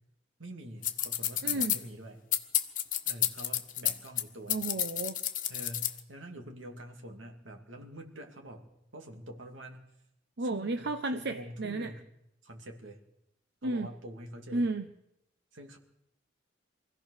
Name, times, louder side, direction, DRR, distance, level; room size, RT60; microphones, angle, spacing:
voice 1, 0.4-2.2 3.0-4.8 5.5-8.7 8.9-9.8 10.4-12.0 12.4-13.0 13.6-14.7 15.5-15.8, right 1 dB, 85° right, 2 dB, 2.7 m, -46 dB
sound 1, 0.8-1.8 2.3-4.2 4.5-6.0, left 11 dB, 45° left, 1.4 m, -30 dB
voice 2, 1.4-1.8 4.5-5.2 10.4-11.9 13.6-13.9 14.5-14.9, right 2 dB, 60° right, 8 dB, 0.9 m, -33 dB
24.5 x 16.0 x 6.6 m, 0.83 s
head